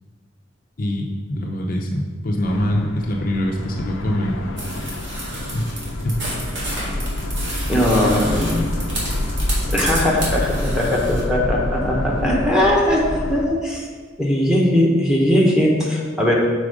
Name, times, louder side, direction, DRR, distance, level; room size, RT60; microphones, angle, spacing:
voice 1, 0.8-4.3 5.5-6.2, left 1 dB, 45° left, 0 dB, 0.6 m, -24 dB
sound 1, 2.4-13.5, left 1 dB, 90° left, 0.7 m, -27 dB
sound 2, 4.6-11.2, right 1 dB, 60° right, 2.0 m, -31 dB
voice 2, 7.7-8.7 9.7-13.9 14.2-16.3, left 1 dB, 5° right, -4 dB, 1.0 m, -19 dB
6.2 x 4.4 x 5.0 m, 1.5 s
head